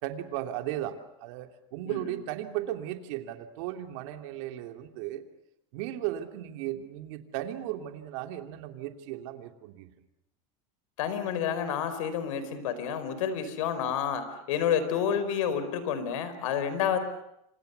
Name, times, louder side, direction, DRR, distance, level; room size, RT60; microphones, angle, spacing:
voice 1, 0.0-5.2 5.7-9.9, right 13 dB, 65° right, 6 dB, 3.0 m, -36 dB
voice 2, 1.9-2.2 11.0-17.0, left 8 dB, 90° left, 12 dB, 4.4 m, -29 dB
29.0 x 26.0 x 6.9 m, 0.82 s
supercardioid pair, 145°, 17 cm